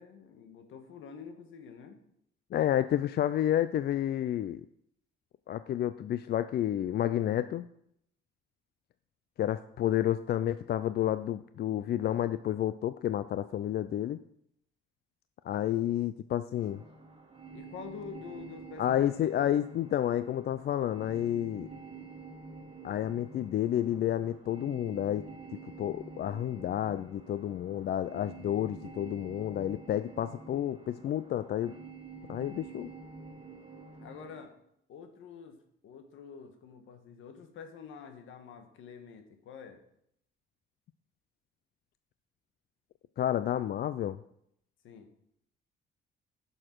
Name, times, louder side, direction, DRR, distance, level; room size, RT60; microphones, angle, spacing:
voice 1, 0.0-2.0 17.5-19.4 34.0-34.5 34.9-35.6 35.8-39.8 44.8-45.1, left 6 dB, 80° left, 6 dB, 1.4 m, -47 dB
voice 2, 2.5-4.7 5.5-7.7 9.4-14.2 15.4-16.8 18.8-21.7 22.8-31.7 32.3-32.9 43.2-44.2, left 11 dB, 55° left, 13 dB, 0.4 m, -30 dB
sound 1, 16.5-34.4, right 4 dB, 35° right, 2.1 m, -48 dB
11.0 x 6.5 x 4.6 m, 0.73 s
cardioid pair, 90°, 20 cm